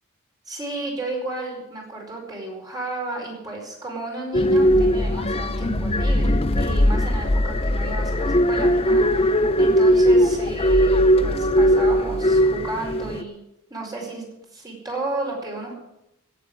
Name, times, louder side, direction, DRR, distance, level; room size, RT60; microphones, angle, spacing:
voice 1, 0.5-13.4 13.7-14.2 14.5-15.7, right 2 dB, 20° right, -1 dB, 4.8 m, -33 dB
sound 1, 4.3-13.2, equal, 25° left, 0.7 m, -19 dB
17.0 x 7.7 x 8.5 m, 0.85 s
head